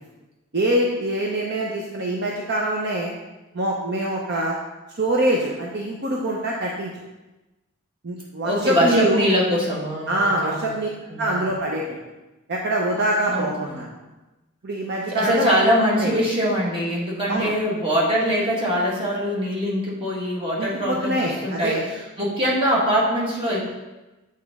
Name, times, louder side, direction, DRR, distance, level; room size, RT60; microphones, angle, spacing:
voice 1, 0.5-3.1 3.5-4.6 5.0-6.9 8.0-9.2 10.1-10.9 11.2-11.8 12.5-13.9 14.6-15.5 16.0-16.1 17.3-17.5 20.6-21.8, right 1 dB, 55° right, -2 dB, 0.7 m, -24 dB
voice 2, 8.4-10.7 11.1-11.4 13.3-13.9 15.1-23.6, equal, 25° right, -5 dB, 1.8 m, -23 dB
8.2 x 4.3 x 3.6 m, 1.1 s
head